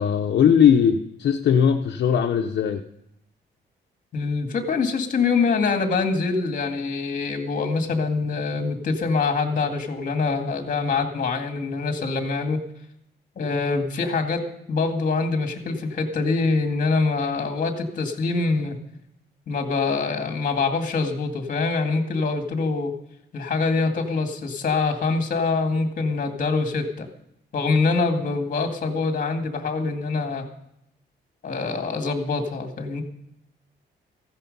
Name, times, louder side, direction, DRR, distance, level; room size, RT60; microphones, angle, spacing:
voice 1, 0.0-2.8, left 8 dB, 65° left, 3 dB, 0.8 m, -19 dB
voice 2, 4.1-12.6 13.4-18.8 19.5-22.9 23.3-27.1 27.5-30.4 31.4-33.0, left 4 dB, 45° left, 5 dB, 2.1 m, -24 dB
15.0 x 12.0 x 5.4 m, 0.78 s
wide cardioid pair, 160°, 19 cm